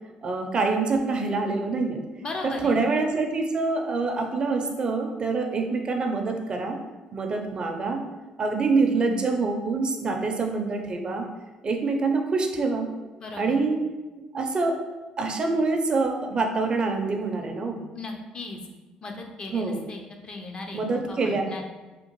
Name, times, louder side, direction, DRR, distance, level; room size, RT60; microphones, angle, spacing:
voice 1, 0.2-2.0 2.4-6.8 7.1-8.0 8.4-11.2 11.6-12.9 13.4-13.8 14.3-14.8 15.2-17.8 19.5-19.8 20.7-21.4, right 3 dB, 40° right, 4 dB, 0.5 m, -25 dB
voice 2, 2.2-2.8 13.2-13.6 17.9-18.6 19.0-20.8 21.1-21.6, left 3 dB, 40° left, 2 dB, 0.5 m, -37 dB
3.5 x 2.4 x 2.9 m, 1.2 s
supercardioid pair, 75°, 3 cm